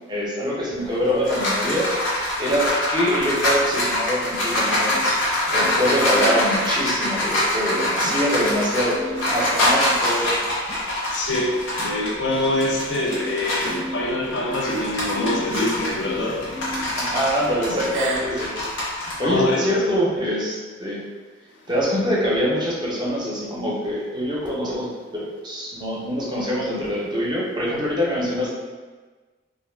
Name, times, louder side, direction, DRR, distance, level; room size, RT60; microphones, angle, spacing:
voice 1, 0.1-5.2 5.5-10.3 17.0-18.5 19.0-21.0 21.7-28.5, equal, 25° right, -5 dB, 0.6 m, -24 dB
sound 1, 0.8-13.8 14.2-19.1, left 1 dB, 90° left, 0.9 m, -24 dB
sound 2, 2.4-4.4 4.7-6.5 6.9-15.5 15.8-17.4, left 1 dB, 20° left, 0.3 m, -38 dB
Gasp, 6.0-6.5 8.0-8.4 9.1-9.5 10.1-10.4 11.1-11.2 12.3-12.4 13.6-14.3 14.6-15.1 15.5-15.9 17.8-18.4, right 3 dB, 80° right, 0.4 m, -33 dB
voice 2, 11.1-17.2 19.2-19.6, left 1 dB, 70° left, -2 dB, 0.5 m, -25 dB
2.6 x 2.2 x 3.3 m, 1.4 s
head